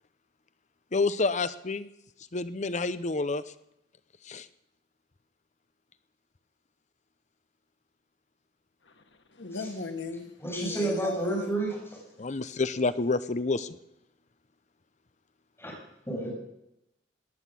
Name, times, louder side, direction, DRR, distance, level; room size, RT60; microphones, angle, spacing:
voice 1, 0.9-1.9 2.3-3.4 4.3-4.5 12.2-13.8, left 3 dB, 40° left, 14 dB, 0.7 m, -28 dB
voice 2, 9.3-11.5, left 3 dB, 90° left, 6 dB, 1.8 m, -37 dB
voice 3, 10.4-11.8 15.6-15.7 16.1-16.3, right 2 dB, 15° left, -3 dB, 6.7 m, -30 dB
18.0 x 10.0 x 7.5 m, 0.86 s
head